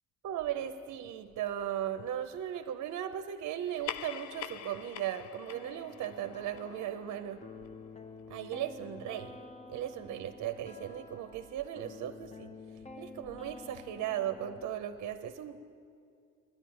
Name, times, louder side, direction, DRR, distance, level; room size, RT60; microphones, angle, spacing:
voice 1, 0.2-7.4 8.3-9.4 9.7-12.5 13.0-15.7, right 10 dB, 65° right, 9 dB, 0.6 m, -37 dB
sound 1, 3.6-8.5, left 10 dB, 65° left, 0.5 m, -45 dB
sound 2, 5.5-14.7, left 3 dB, 20° left, 0.8 m, -50 dB
10.5 x 8.6 x 9.1 m, 2.3 s
cardioid pair, 90°, 30 cm